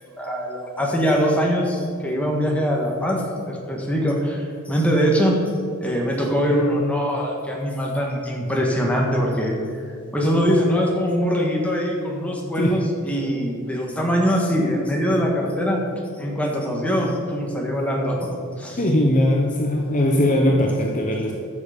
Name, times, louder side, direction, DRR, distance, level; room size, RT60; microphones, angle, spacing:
voice 1, 0.2-5.4 5.8-9.8 10.1-15.8 16.2-18.2 18.6-18.8, equal, 5° left, -2 dB, 1.6 m, -22 dB
voice 2, 18.8-21.3, left 1 dB, 35° left, 0 dB, 0.9 m, -20 dB
13.5 x 6.6 x 5.2 m, 2.4 s
head